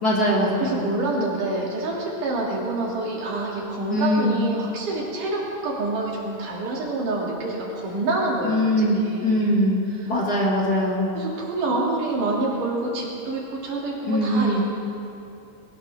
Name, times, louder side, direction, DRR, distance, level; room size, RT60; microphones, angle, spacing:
voice 1, 0.0-0.8 3.9-4.4 8.4-11.1 14.1-14.6, equal, 35° left, -4 dB, 2.4 m, -22 dB
voice 2, 0.6-9.5 10.0-10.1 11.1-14.6, right 2 dB, 90° right, -4 dB, 4.3 m, -27 dB
21.0 x 18.5 x 3.6 m, 2.8 s
omnidirectional pair, 3.5 m